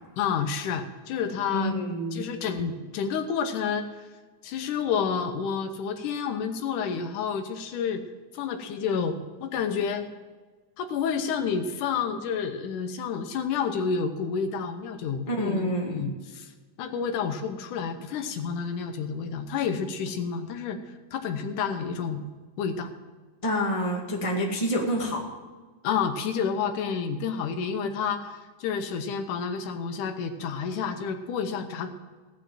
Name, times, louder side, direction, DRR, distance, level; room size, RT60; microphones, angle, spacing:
voice 1, 0.2-1.8 2.1-3.9 4.4-8.0 8.3-10.1 10.8-16.5 16.8-20.8 21.1-22.2 22.6-22.9 25.8-31.9, left 6 dB, 80° left, 7 dB, 2.4 m, -29 dB
voice 2, 1.5-2.3 15.3-16.0 23.4-25.3, equal, 15° left, -2 dB, 1.6 m, -27 dB
17.5 x 6.1 x 7.6 m, 1.3 s
omnidirectional pair, 3.6 m